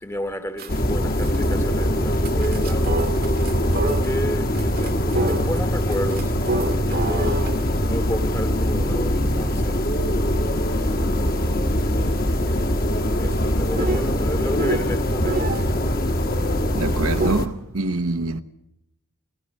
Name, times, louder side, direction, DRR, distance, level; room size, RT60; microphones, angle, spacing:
voice 1, 0.0-2.9 3.8-6.4 7.0-9.8 11.1-12.0 13.2-15.6, left 1 dB, 15° left, 1.1 m, -32 dB
sound 1, 0.6-0.9 1.2-1.5 2.2-4.2 4.5-15.7 17.2-17.3, right 2 dB, 45° right, 1.2 m, -31 dB
sound 2, 0.7-17.5, equal, 45° left, 1.4 m, -22 dB
voice 2, 16.7-18.4, right 2 dB, 85° right, 1.0 m, -25 dB
29.0 x 16.5 x 5.4 m
head